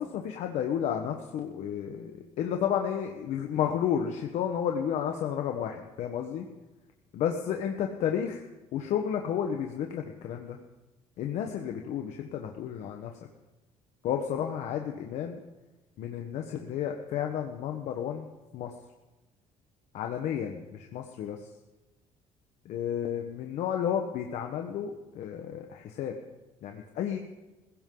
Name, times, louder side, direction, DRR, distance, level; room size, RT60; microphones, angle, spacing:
voice 1, 0.0-6.5 7.1-8.4 8.7-10.6 11.2-13.1 14.0-15.4 16.0-18.7 19.9-21.4 22.6-26.2 26.6-27.2, left 9 dB, 70° left, 3 dB, 1.3 m, -32 dB
21.0 x 16.5 x 3.9 m, 1.1 s
cardioid pair, 140°, 12 cm